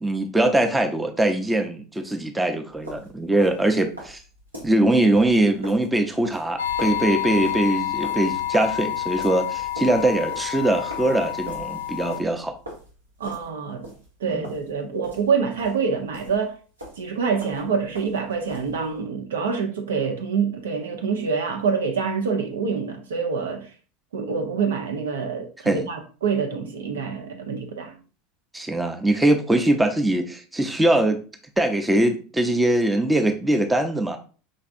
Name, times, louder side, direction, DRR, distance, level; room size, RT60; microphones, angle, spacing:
voice 1, 0.0-4.2 4.6-12.5 14.3-14.5 25.7-25.9 28.5-31.2 31.6-34.2, right 1 dB, 10° right, 0.6 m, -22 dB
sound 1, 2.7-16.5 16.8-19.0, right 1 dB, 90° right, 1.3 m, -42 dB
sound 2, 6.6-12.2, left 12 dB, 70° left, 0.3 m, -28 dB
voice 2, 13.2-13.9 14.2-16.6 17.0-23.7 24.1-28.0, right 5 dB, 70° right, 0.6 m, -26 dB
5.2 x 3.3 x 2.4 m
figure-of-eight pair, 80°, 0 cm